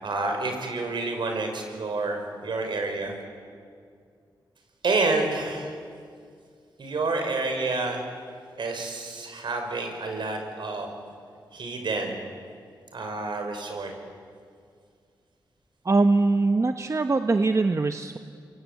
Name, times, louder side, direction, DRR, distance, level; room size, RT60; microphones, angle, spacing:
voice 1, 0.0-3.1 4.8-5.8 6.8-8.0 8.6-10.9 11.5-12.2 12.9-13.9, right 3 dB, 70° right, 4 dB, 5.6 m, -29 dB
voice 2, 15.8-18.2, right 3 dB, 35° right, 7 dB, 1.0 m, -22 dB
28.5 x 22.5 x 8.4 m, 2.2 s
cardioid pair, 70°, 8 cm